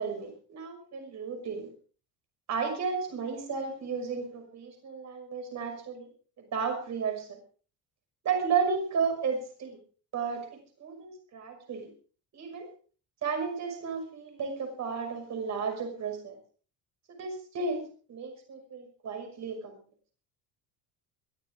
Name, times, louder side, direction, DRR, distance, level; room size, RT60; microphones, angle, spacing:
voice 1, 0.0-1.7 2.5-6.1 6.5-7.4 8.2-9.8 10.1-11.9 12.3-12.7 13.2-16.4 17.2-17.8 18.1-19.8, right 5 dB, 40° right, 5 dB, 6.0 m, -33 dB
22.0 x 14.5 x 3.7 m, 0.41 s
cardioid pair, 165°, 42 cm